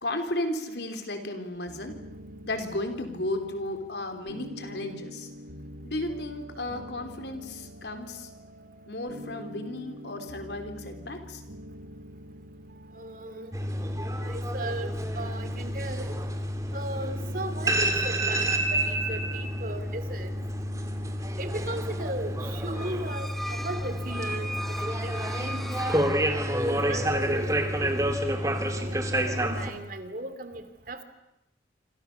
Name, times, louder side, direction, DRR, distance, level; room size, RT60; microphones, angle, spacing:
voice 1, 0.0-1.9 2.5-5.3 5.8-8.3 8.9-11.4, left 1 dB, 70° left, 6 dB, 3.9 m, -34 dB
sound 1, 1.7-13.8, equal, 90° right, 1.9 m, -45 dB
voice 2, 12.9-13.5 14.1-16.1 16.7-20.4 21.4-25.7 26.7-28.1 28.7-31.0, right 1 dB, 50° right, 10 dB, 2.6 m, -37 dB
sound 2, 13.5-29.7, right 1 dB, 20° right, 2.5 m, -29 dB
sound 3, 22.7-26.9, equal, ahead, 0.9 m, -38 dB
27.5 x 26.5 x 7.0 m, 0.88 s
head